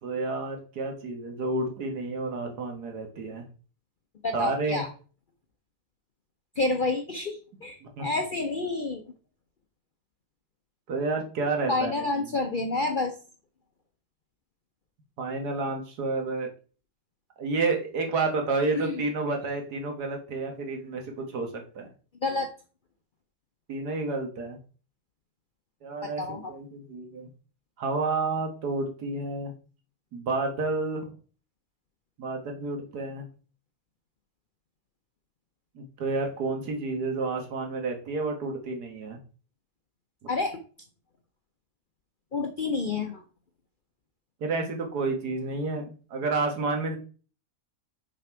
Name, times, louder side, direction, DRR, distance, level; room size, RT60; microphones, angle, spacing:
voice 1, 0.0-3.4 4.3-4.8 7.8-8.1 10.9-12.0 15.2-16.5 17.4-21.9 23.7-24.6 25.8-27.3 27.8-29.5 30.1-31.1 32.2-33.3 35.8-39.2 40.2-40.3 44.4-47.0, right 3 dB, 75° right, 3 dB, 1.9 m, -30 dB
voice 2, 4.2-4.9 6.6-9.0 11.7-13.1 18.7-19.0 22.2-22.5 26.0-26.5 40.3-40.6 42.3-43.2, left 3 dB, 50° left, 4 dB, 0.6 m, -29 dB
6.5 x 4.3 x 4.5 m, 0.38 s
omnidirectional pair, 1.7 m